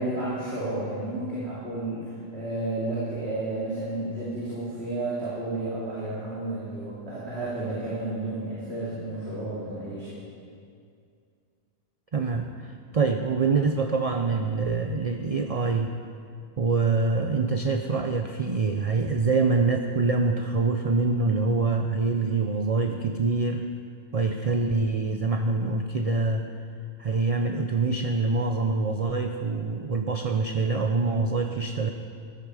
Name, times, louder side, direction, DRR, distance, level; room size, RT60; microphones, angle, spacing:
voice 1, 0.0-10.2 22.8-22.9, right 2 dB, 80° right, -8 dB, 3.0 m, -32 dB
voice 2, 12.1-15.9 16.6-23.7 24.1-26.4 27.0-31.9, right 3 dB, 40° right, 5 dB, 0.6 m, -25 dB
14.5 x 12.5 x 4.9 m, 2.3 s
omnidirectional pair, 1.1 m